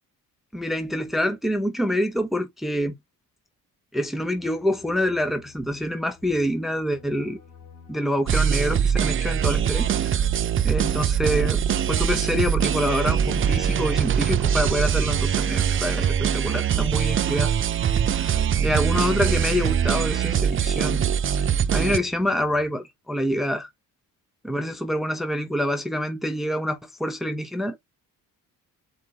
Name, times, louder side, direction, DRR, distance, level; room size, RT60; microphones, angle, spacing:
voice 1, 0.5-2.9 3.9-7.4 7.9-10.2 10.6-17.5 18.1-21.0 21.3-23.7 24.4-27.8, left 1 dB, ahead, 0.8 m, -26 dB
sound 1, 4.3-22.7, left 6 dB, 50° left, 1.9 m, -51 dB
sound 2, 8.3-22.0, right 8 dB, 35° right, 0.4 m, -22 dB
4.5 x 2.5 x 4.1 m
cardioid pair, 100°, 38 cm